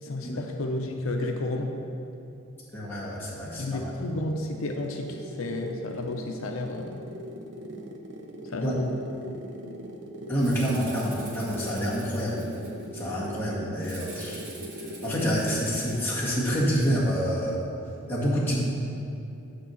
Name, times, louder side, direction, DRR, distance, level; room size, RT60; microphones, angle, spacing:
voice 1, 0.0-1.8 3.6-7.0 8.4-8.9, left 2 dB, 80° left, 3 dB, 0.6 m, -32 dB
voice 2, 2.7-3.8 8.6-8.8 10.3-12.4 12.9-14.4 15.0-17.6 18.1-18.6, equal, 10° left, -7 dB, 1.8 m, -27 dB
sound 1, 3.6-15.3, equal, 60° right, 0.7 m, -41 dB
Rattle (instrument), 10.4-13.0 13.8-16.0, right 3 dB, 40° right, 1.5 m, -46 dB
8.8 x 4.6 x 7.0 m, 2.7 s
head